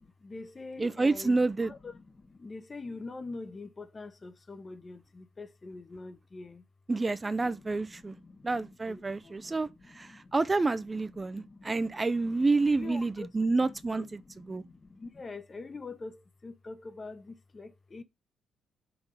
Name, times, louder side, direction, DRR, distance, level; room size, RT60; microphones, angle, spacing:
voice 1, 0.0-6.6 7.4-10.3 11.1-12.1 12.4-18.0, left 3 dB, 35° left, 1.0 m, -45 dB
voice 2, 0.8-1.7 6.9-8.2 8.4-14.2 14.5-14.6, right 3 dB, 25° right, 0.5 m, -29 dB
5.9 x 3.9 x 5.4 m
hypercardioid pair, 45°, 0 cm